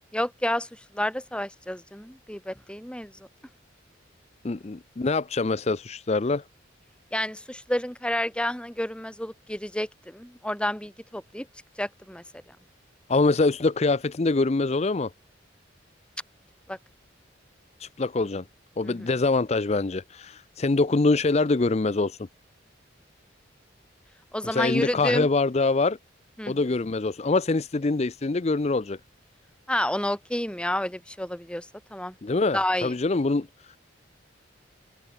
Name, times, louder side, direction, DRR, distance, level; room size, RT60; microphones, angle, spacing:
voice 1, 0.1-0.7 0.9-3.1 7.1-11.5 11.8-12.2 16.7-16.8 18.8-19.1 24.3-25.3 26.4-26.6 29.7-32.1 32.5-32.9, left 1 dB, 5° left, 3.0 m, -30 dB
voice 2, 4.4-6.4 13.1-15.1 17.8-18.4 18.8-22.2 24.5-26.0 26.5-29.0 32.2-33.8, left 3 dB, 35° left, 0.5 m, -24 dB
head